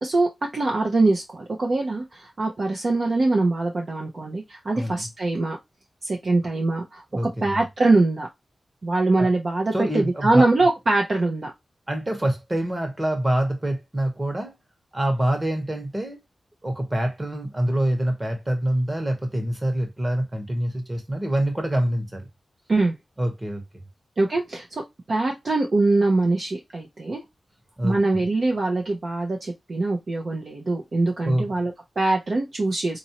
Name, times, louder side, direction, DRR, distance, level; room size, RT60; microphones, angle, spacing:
voice 1, 0.0-5.6 6.0-8.3 8.8-11.5 22.7-23.0 24.2-24.8 25.1-27.2 27.8-33.0, right 2 dB, 45° right, 0.7 m, -23 dB
voice 2, 4.7-5.1 7.1-7.6 9.2-9.3 9.7-10.5 11.9-14.5 14.9-16.2 16.6-22.2 23.2-23.6 27.8-28.2 31.2-31.5, right 1 dB, 20° right, 1.1 m, -25 dB
4.1 x 2.6 x 2.8 m
wide cardioid pair, 165°, 0 cm